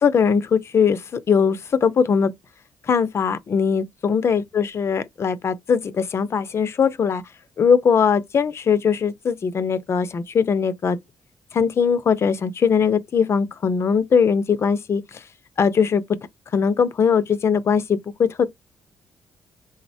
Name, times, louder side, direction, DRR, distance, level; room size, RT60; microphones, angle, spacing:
voice 1, 0.0-2.3 2.9-7.2 7.6-11.0 11.5-15.2 15.6-16.0 16.5-18.4, left 6 dB, 45° left, 0.5 m, -20 dB
3.7 x 2.0 x 2.6 m
supercardioid pair, 70°, 6 cm